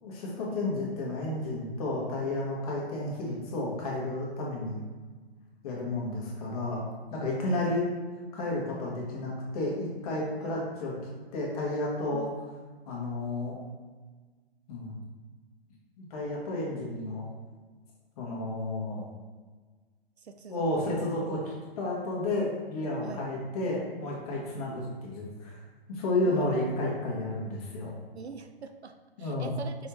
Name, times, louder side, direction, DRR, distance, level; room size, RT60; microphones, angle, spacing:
voice 1, 0.0-4.8 5.6-6.8 7.1-7.9 8.3-10.9 11.3-12.3 12.9-13.6 14.7-14.9 16.0-17.3 18.2-19.1 20.5-25.6 25.9-27.9 29.2-29.5, left 2 dB, 35° left, -3 dB, 1.3 m, -32 dB
voice 2, 7.5-7.9 8.3-8.7 10.4-10.6 12.1-12.3 20.2-21.0 23.0-23.3 26.2-26.5 28.1-29.9, right 5 dB, 80° right, 8 dB, 0.5 m, -43 dB
5.5 x 3.3 x 3.0 m, 1.4 s
figure-of-eight pair, 125°, 32 cm